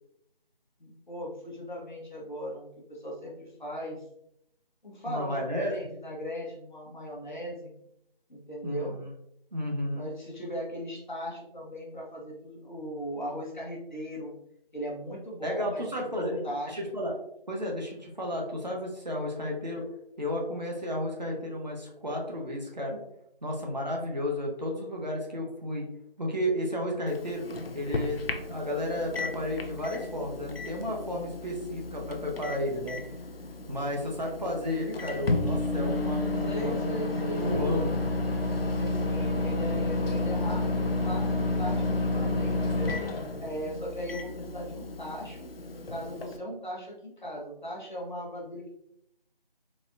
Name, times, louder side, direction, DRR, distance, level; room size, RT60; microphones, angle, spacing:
voice 1, 0.8-4.0 4.8-7.7 8.3-9.0 9.9-14.3 14.7-16.9 36.4-37.8 38.8-48.7, equal, 50° left, -2 dB, 1.1 m, -38 dB
voice 2, 5.0-5.7 8.6-9.1 9.5-10.1 15.4-16.4 16.8-17.1 17.5-19.8 20.2-23.0 23.4-25.9 26.2-27.4 27.7-33.0 33.7-36.9 37.2-38.0, left 1 dB, 45° right, -1 dB, 0.8 m, -32 dB
Microwave oven, 27.1-46.4, left 2 dB, 75° left, 0.6 m, -31 dB
4.1 x 2.8 x 2.5 m, 0.76 s
figure-of-eight pair, 165°, 29 cm